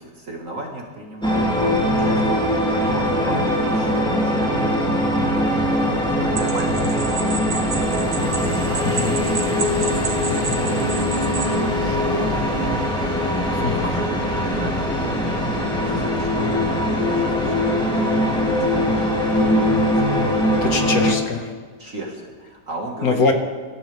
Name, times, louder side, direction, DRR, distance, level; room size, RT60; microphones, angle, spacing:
voice 1, 0.0-1.4 1.9-4.7 6.0-7.9 8.4-9.1 9.5-9.7 10.1-12.5 13.0-15.3 15.7-20.2 21.8-23.3, right 2 dB, 45° right, -1 dB, 2.3 m, -35 dB
sound 1, 1.2-21.1, left 1 dB, 5° left, 2.8 m, -21 dB
sound 2, 6.4-11.6, right 5 dB, 65° right, 1.9 m, -31 dB
voice 2, 20.5-21.5 23.0-23.3, left 4 dB, 55° left, 3 dB, 2.2 m, -22 dB
25.5 x 14.0 x 3.5 m, 1.5 s
omnidirectional pair, 1.9 m